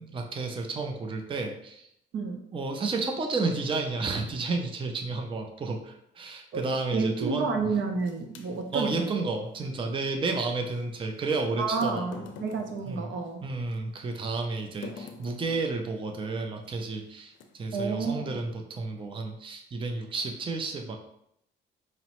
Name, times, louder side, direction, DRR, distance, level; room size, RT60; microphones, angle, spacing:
voice 1, 0.0-1.9 2.5-7.5 8.7-12.2 12.9-13.1 13.4-21.0, right 3 dB, 25° right, 3 dB, 0.5 m, -31 dB
voice 2, 6.9-9.2 11.6-13.4 17.7-18.4, right 4 dB, 70° right, 4 dB, 0.6 m, -30 dB
sound 1, 7.8-9.0 10.7-10.8 11.6-13.8 14.8-15.8 16.6-16.8 17.3-17.9, left 4 dB, 75° left, 0.5 m, -45 dB
5.2 x 2.0 x 3.0 m, 0.75 s
cardioid pair, 90°, 20 cm